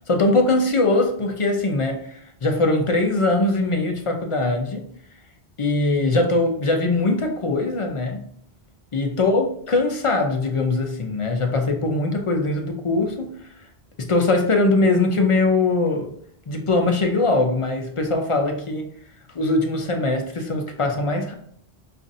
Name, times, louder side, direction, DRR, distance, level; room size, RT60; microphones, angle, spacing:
voice 1, 0.1-4.9 5.6-8.3 8.9-13.5 14.0-16.1 16.5-18.9 19.3-21.3, left 2 dB, 40° left, 3 dB, 0.5 m, -21 dB
5.4 x 2.5 x 2.6 m, 0.67 s
omnidirectional pair, 1.0 m